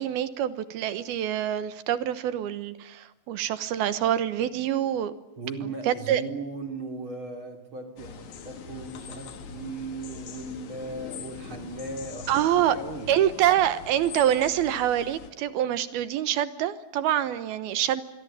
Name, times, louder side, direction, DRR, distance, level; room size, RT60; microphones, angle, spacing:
voice 1, 0.0-5.1 5.9-6.2 12.3-12.8 13.1-18.0, right 11 dB, 70° right, 14 dB, 2.8 m, -25 dB
voice 2, 5.4-13.1, right 3 dB, 35° right, 6 dB, 3.3 m, -37 dB
sound 1, 8.0-15.3, left 6 dB, 50° left, 2.8 m, -43 dB
26.5 x 22.0 x 8.9 m, 0.95 s
omnidirectional pair, 4.9 m